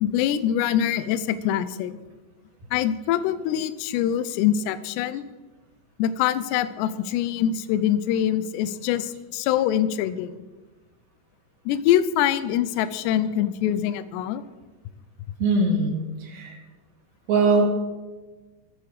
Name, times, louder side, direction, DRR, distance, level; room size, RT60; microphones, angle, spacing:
voice 1, 0.0-2.0 2.7-5.2 6.0-10.3 11.7-14.4, left 10 dB, 80° left, 13 dB, 2.7 m, -24 dB
voice 2, 15.4-16.6 17.3-17.7, right 3 dB, 70° right, 1 dB, 4.6 m, -21 dB
23.0 x 8.4 x 4.9 m, 1.2 s
omnidirectional pair, 5.3 m